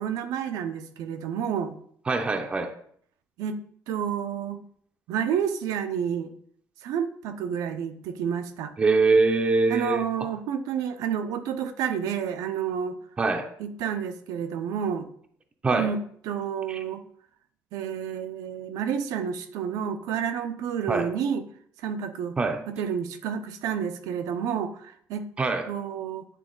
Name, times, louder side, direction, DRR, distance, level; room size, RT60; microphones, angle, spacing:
voice 1, 0.0-1.8 3.4-4.6 5.1-6.3 6.8-8.7 9.7-13.0 13.6-15.1 15.7-16.0 16.2-17.0 17.7-21.4 21.8-22.4 22.7-25.3 25.7-26.2, right 8 dB, 80° right, 9 dB, 0.6 m, -30 dB
voice 2, 2.1-2.7 8.8-10.3 13.2-13.5 15.6-15.9 16.7-16.8 20.9-21.1 22.4-22.6 25.4-25.7, right 3 dB, 20° right, 5 dB, 0.5 m, -23 dB
8.3 x 3.5 x 3.8 m, 0.62 s
cardioid pair, 130°, 6 cm